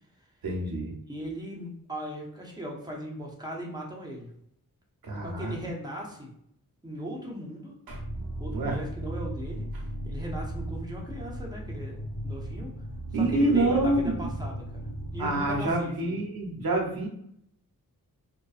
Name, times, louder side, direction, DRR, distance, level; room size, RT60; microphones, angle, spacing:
voice 1, 0.4-0.9 5.0-5.5 7.9-8.0 8.5-8.8 13.1-14.3 15.2-17.1, right 2 dB, 75° right, 0 dB, 0.8 m, -27 dB
voice 2, 1.1-4.3 5.2-6.3 6.8-7.7 8.4-12.0 12.2-12.7 13.1-14.8 15.1-16.2, equal, 10° right, -2 dB, 0.8 m, -38 dB
sound 1, 7.9-15.7, right 1 dB, 55° left, 0.9 m, -36 dB
2.6 x 2.2 x 2.4 m, 0.72 s
cardioid pair, 60°, 36 cm